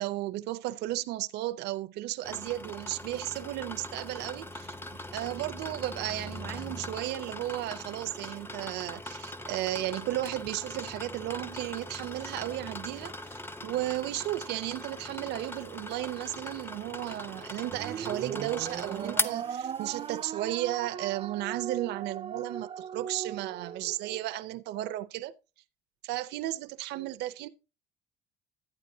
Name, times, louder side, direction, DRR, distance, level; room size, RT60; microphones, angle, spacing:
voice 1, 0.0-4.7 5.1-25.3 26.0-27.5, right 15 dB, 85° right, 0.6 m, -34 dB
sound 1, 2.2-20.2, left 1 dB, 15° left, 0.7 m, -40 dB
sound 2, 17.7-24.2, right 8 dB, 35° right, 0.4 m, -38 dB
11.5 x 9.0 x 2.7 m
cardioid pair, 110°, 17 cm